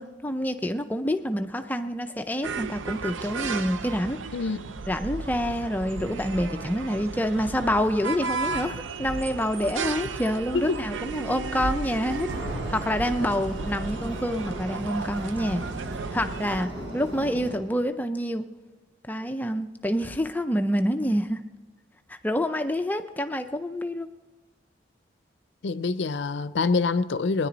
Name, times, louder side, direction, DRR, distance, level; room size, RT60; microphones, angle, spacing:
voice 1, 0.0-4.2 4.9-12.3 12.7-15.6 16.1-18.5 19.1-21.4 22.1-24.1, equal, 10° left, 0.5 m, -27 dB
sound 1, 2.4-16.6, right 4 dB, 85° right, 0.5 m, -34 dB
voice 2, 4.3-4.8 10.5-10.8 25.6-27.5, left 4 dB, 70° left, 0.5 m, -26 dB
sound 2, 12.3-17.6, right 1 dB, 70° right, 4.2 m, -37 dB
20.0 x 10.0 x 4.0 m
head